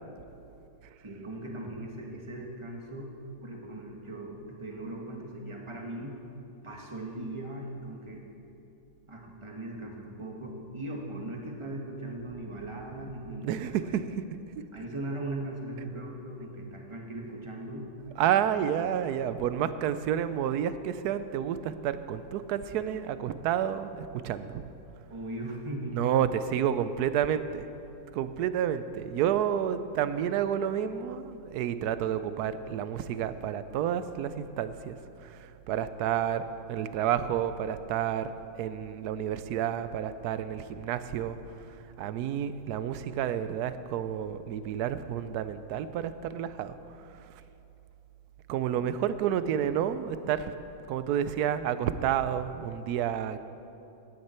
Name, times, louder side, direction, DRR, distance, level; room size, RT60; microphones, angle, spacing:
voice 1, 1.0-3.1 3.4-6.1 6.6-8.3 9.1-14.0 14.7-17.9 18.3-18.7 25.1-26.0, right 1 dB, 20° right, 0 dB, 1.3 m, -39 dB
voice 2, 13.4-14.0 18.2-24.6 25.9-27.7 28.1-34.9 35.2-38.3 38.6-41.4 42.0-46.8 47.1-47.3 48.5-50.5 50.9-53.4, right 9 dB, 80° right, 12 dB, 1.1 m, -30 dB
16.0 x 9.7 x 4.4 m, 2.8 s
omnidirectional pair, 1.7 m